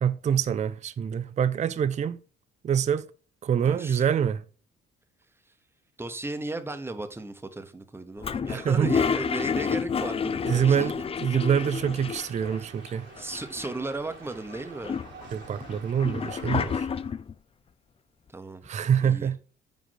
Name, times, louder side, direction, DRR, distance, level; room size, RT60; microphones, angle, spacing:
voice 1, 0.0-2.2 2.6-3.1 3.4-4.4 8.5-8.9 10.5-10.9 11.2-13.1 15.3-16.9 18.7-19.4, right 8 dB, 35° right, 0.4 m, -25 dB
voice 2, 3.6-4.1 6.0-11.1 12.6-12.7 13.2-15.0 16.5-16.8 18.3-18.7 19.0-19.3, right 2 dB, 10° right, 0.9 m, -36 dB
Toilet flush, 8.2-12.6 12.9-13.0 13.2-14.0 14.5-17.3, left 6 dB, 30° left, 0.4 m, -30 dB
sound 1, 11.5-16.8, right 5 dB, 65° right, 1.7 m, -49 dB
5.2 x 5.0 x 5.6 m
cardioid pair, 90°, 20 cm